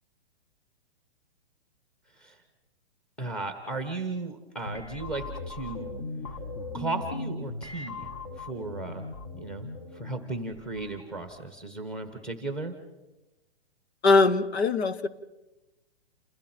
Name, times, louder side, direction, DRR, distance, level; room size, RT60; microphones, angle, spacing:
voice 1, 3.2-5.9 6.7-8.1 8.4-9.1 9.3-9.7 9.9-12.7, right 3 dB, ahead, 6 dB, 1.2 m, -35 dB
sound 1, 4.7-11.5, left 3 dB, 30° left, 1.2 m, -39 dB
voice 2, 14.0-15.1, left 3 dB, 90° left, 11 dB, 1.6 m, -21 dB
28.5 x 27.5 x 4.5 m, 1.0 s
hypercardioid pair, 175°, 32 cm